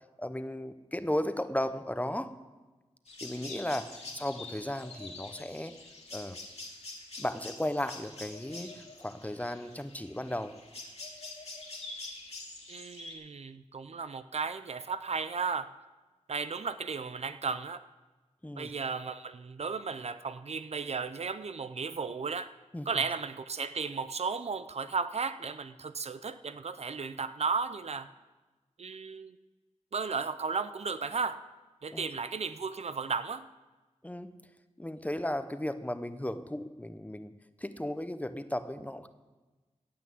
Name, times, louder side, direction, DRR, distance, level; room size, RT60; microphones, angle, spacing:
voice 1, 0.2-2.3 3.2-5.7 6.1-6.4 7.2-10.6 18.4-18.7 22.7-22.9 31.9-32.1 34.0-34.4 34.8-37.3 37.6-39.1, left 1 dB, 10° left, 11 dB, 0.8 m, -35 dB
sound 1, 3.1-13.1, left 2 dB, 60° left, 2.4 m, -46 dB
voice 2, 12.7-15.7 16.3-17.8 18.6-22.5 22.9-28.1 28.8-29.4 29.9-31.4 31.8-33.5, right 5 dB, 60° right, 12 dB, 0.5 m, -34 dB
16.5 x 5.9 x 8.3 m, 1.2 s
wide cardioid pair, 60°, 12 cm